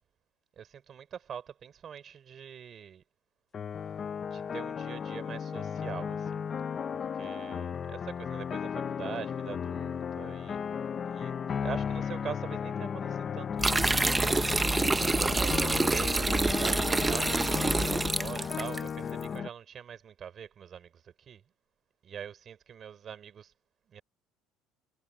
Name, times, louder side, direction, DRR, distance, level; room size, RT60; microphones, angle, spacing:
voice 1, 0.6-3.0 4.3-6.4 6.9-10.6 11.1-11.3 11.6-14.7 15.1-21.4 22.0-23.5 23.9-24.0, right 8 dB, 30° right, 4.8 m, -43 dB
sound 1, 3.5-19.5, left 7 dB, 25° left, 0.7 m, -35 dB
sound 2, 13.6-18.8, right 3 dB, 10° right, 0.9 m, -27 dB
cardioid pair, 160°, 0 cm